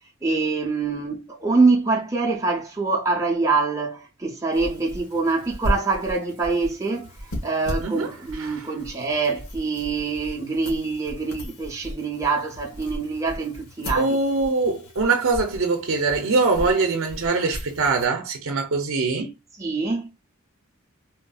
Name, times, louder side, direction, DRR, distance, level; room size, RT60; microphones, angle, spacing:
voice 1, 0.2-14.2 19.6-20.1, right 3 dB, 15° right, 0.6 m, -25 dB
sound 1, 4.5-18.1, equal, 80° left, 1.2 m, -36 dB
voice 2, 7.8-8.7 13.9-19.3, right 3 dB, 70° right, 0.6 m, -23 dB
3.6 x 2.6 x 2.3 m
head